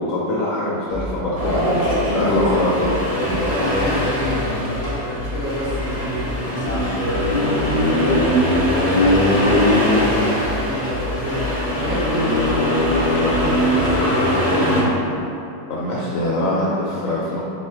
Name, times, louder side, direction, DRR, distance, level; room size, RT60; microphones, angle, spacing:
voice 1, 0.0-2.9 15.7-17.4, left 1 dB, 70° left, -6 dB, 0.8 m, -23 dB
sound 1, 0.9-14.0, left 2 dB, 80° right, 1.6 m, -32 dB
Accelerating revving vroom, 1.4-14.8, left 1 dB, 40° left, 0.5 m, -21 dB
voice 2, 1.4-2.4 3.1-8.3 8.7-14.6, equal, 60° right, -11 dB, 1.9 m, -27 dB
4.0 x 2.4 x 4.4 m, 2.9 s
omnidirectional pair, 1.9 m